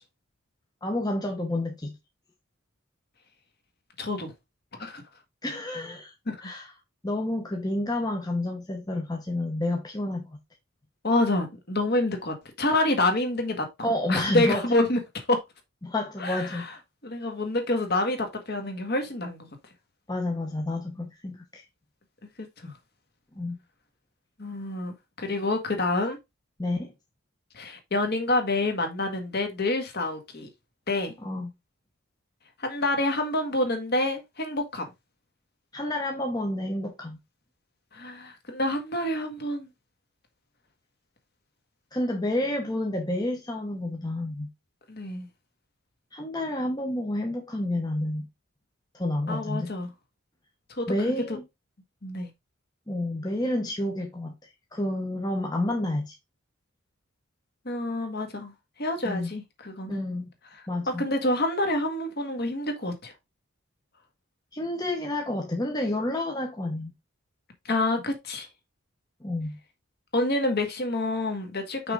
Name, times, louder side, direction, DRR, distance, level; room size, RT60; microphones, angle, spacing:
voice 1, 0.8-1.9 5.4-6.1 6.4-6.7 7.0-10.4 13.8-14.7 15.8-16.7 20.1-21.6 23.3-23.6 26.6-26.9 31.2-31.5 35.7-37.2 41.9-44.5 46.1-48.3 48.9-49.7 50.9-51.4 52.9-56.1 59.0-59.3 59.9-60.3 60.7-61.1 64.5-66.9 69.2-69.6 71.8-71.9, left 1 dB, 20° left, 0.9 m, -29 dB
voice 2, 4.0-4.3 4.8-5.0 6.3-6.4 11.0-13.6 14.1-15.4 16.2-16.7 17.0-19.5 22.6-22.7 24.4-26.2 27.5-30.5 30.9-31.1 32.6-34.8 37.9-39.7 44.9-45.3 49.3-49.9 50.8-50.9 52.0-52.3 57.6-58.5 58.8-60.0 61.0-63.1 67.7-68.5 70.1-71.9, left 2 dB, 45° left, 1.7 m, -27 dB
5.9 x 3.6 x 5.2 m
head